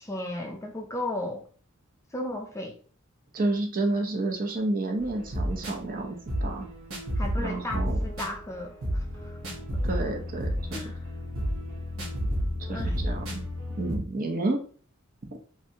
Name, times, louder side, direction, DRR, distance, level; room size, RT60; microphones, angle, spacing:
voice 1, 0.0-1.5 2.1-2.8 7.2-8.7 9.2-9.4 10.7-11.1 12.7-13.0, left 1 dB, 15° left, 0.4 m, -35 dB
voice 2, 3.3-6.7 7.4-8.0 9.8-10.8 12.7-13.4 13.8-14.6, right 2 dB, 40° right, 0.6 m, -30 dB
sound 1, 5.0-14.0, equal, 70° right, 1.0 m, -31 dB
3.1 x 2.5 x 2.7 m
head